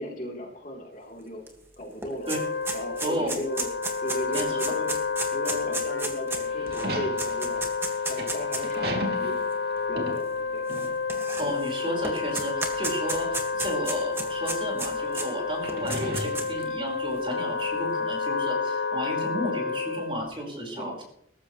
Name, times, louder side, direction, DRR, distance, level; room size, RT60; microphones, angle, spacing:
voice 1, 0.0-1.4 1.8-2.3 2.7-3.7 4.0-4.9 5.3-7.6 8.1-9.3 9.9-10.7 20.8-21.0, equal, 45° left, -1 dB, 3.6 m, -36 dB
sound 1, 1.5-1.6 1.8-8.7 9.5-9.6 10.7-11.7 12.0-15.3 15.7-16.6, right 2 dB, 15° right, 1.9 m, -33 dB
Wind instrument woodwind instrument, 2.1-20.3, left 4 dB, 75° left, 1.0 m, -30 dB
sound 2, 6.3-11.2 11.4-11.6 12.6-13.4 14.0-14.1 15.5-17.0, right 1 dB, 60° right, 2.8 m, -35 dB
voice 2, 11.4-21.0, equal, 30° right, -1 dB, 5.0 m, -33 dB
18.5 x 14.5 x 3.2 m, 0.69 s
head